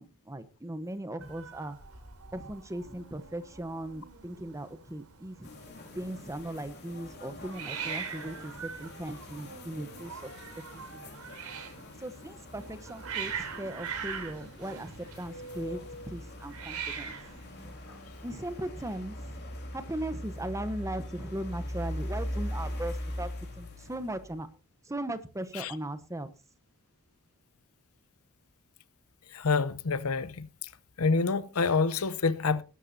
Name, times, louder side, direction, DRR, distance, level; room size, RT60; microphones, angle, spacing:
voice 1, 0.0-1.8 2.3-5.5 5.9-10.1 10.7-11.1 12.0-15.8 16.1-17.2 18.2-19.4 19.7-23.3 23.6-24.5 24.9-26.3, right 1 dB, 15° right, 1.0 m, -38 dB
Hiss, 1.2-18.5, right 6 dB, 80° right, 3.4 m, -43 dB
sound 1, 5.4-24.5, left 1 dB, 50° left, 3.8 m, -41 dB
voice 2, 29.3-30.5 31.0-32.6, left 4 dB, 70° left, 0.7 m, -27 dB
19.5 x 11.5 x 2.8 m
head